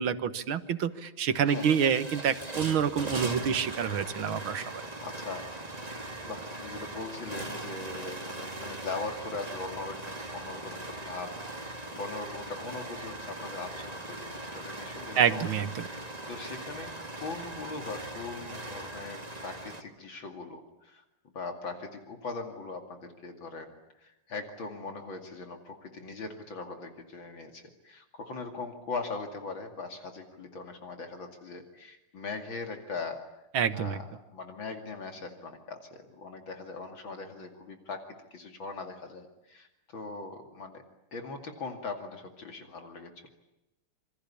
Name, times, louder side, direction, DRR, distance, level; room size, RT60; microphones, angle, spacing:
voice 1, 0.0-4.8 15.2-15.9 33.5-34.0, right 7 dB, 75° right, 12 dB, 2.1 m, -27 dB
sound 1, 0.9-1.0 1.3-19.8, right 2 dB, 20° right, 2.1 m, -40 dB
voice 2, 5.0-5.5 6.2-11.6 11.9-15.4 15.8-21.0 21.3-23.7 24.0-33.2 33.7-34.1 34.3-40.8 41.1-43.3, left 3 dB, 65° left, 5 dB, 3.2 m, -40 dB
27.5 x 25.0 x 8.6 m, 0.89 s
omnidirectional pair, 2.3 m